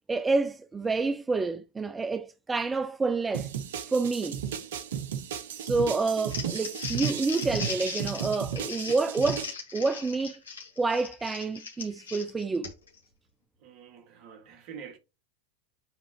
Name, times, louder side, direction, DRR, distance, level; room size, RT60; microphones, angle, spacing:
voice 1, 0.1-3.5 3.9-4.4 5.6-10.4 10.8-12.7, right 3 dB, 15° right, 0.5 m, -28 dB
sound 1, 3.3-9.5, right 8 dB, 70° right, 0.9 m, -34 dB
Crumpling crinkling, 6.1-13.0, left 5 dB, 85° left, 2.6 m, -38 dB
voice 2, 13.6-15.0, right 7 dB, 50° right, 1.9 m, -46 dB
8.8 x 3.7 x 3.1 m
hypercardioid pair, 85°, 0 cm